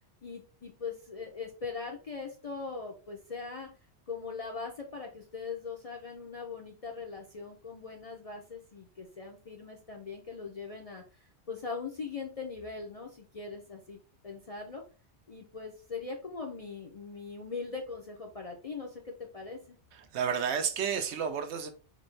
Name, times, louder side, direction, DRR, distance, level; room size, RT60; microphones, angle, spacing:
voice 1, 0.2-3.7 4.1-14.0 14.2-14.8 15.3-19.8, left 4 dB, 45° left, 0.5 m, -41 dB
voice 2, 20.0-21.7, right 7 dB, 75° right, 0.9 m, -31 dB
4.1 x 2.6 x 3.1 m
omnidirectional pair, 1.2 m